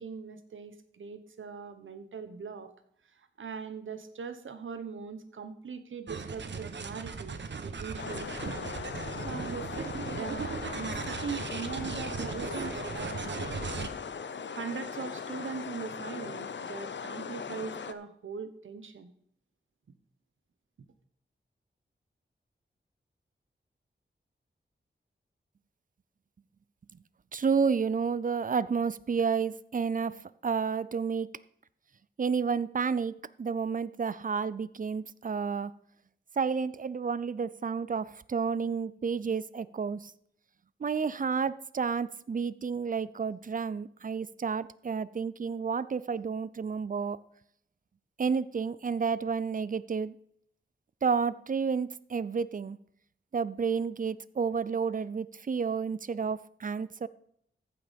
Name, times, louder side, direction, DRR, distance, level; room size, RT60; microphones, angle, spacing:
voice 1, 0.0-2.7 3.1-8.7 9.2-13.7 14.5-19.1, right 6 dB, 90° right, 10 dB, 1.1 m, -41 dB
sound 1, 6.1-13.9, right 5 dB, 70° right, 1.0 m, -38 dB
sound 2, 8.0-17.9, left 6 dB, 70° left, 0.7 m, -39 dB
voice 2, 27.3-31.3 32.2-35.7 36.4-40.1 40.8-47.2 48.2-50.1 51.0-52.8 53.3-57.1, right 5 dB, 45° right, 18 dB, 0.5 m, -30 dB
14.5 x 6.0 x 5.2 m, 0.69 s
wide cardioid pair, 90°, 20 cm